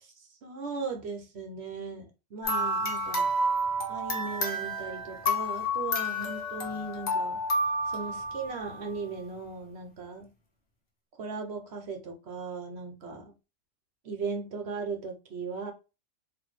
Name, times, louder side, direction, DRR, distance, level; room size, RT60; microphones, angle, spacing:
voice 1, 0.4-3.3 3.9-7.4 7.9-10.3 11.2-13.3 14.0-15.7, right 4 dB, 55° right, 1.0 m, -37 dB
sound 1, 2.4-8.9, equal, 50° left, 1.2 m, -30 dB
4.0 x 2.7 x 3.1 m
omnidirectional pair, 1.4 m